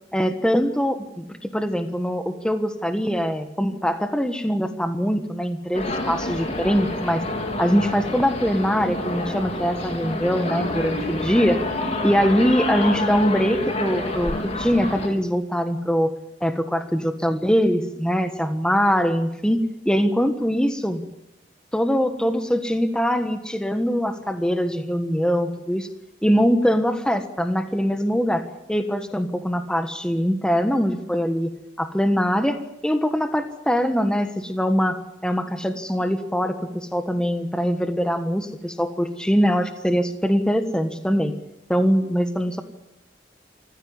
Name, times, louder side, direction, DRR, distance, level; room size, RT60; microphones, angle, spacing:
voice 1, 0.1-1.3 1.5-7.2 7.6-11.6 12.0-16.1 16.4-21.0 21.7-25.9 26.2-41.3 41.7-42.6, equal, 5° left, 8 dB, 1.4 m, -22 dB
sound 1, 5.7-15.1, left 1 dB, 40° left, 4.1 m, -28 dB
26.5 x 15.0 x 9.7 m, 0.82 s
head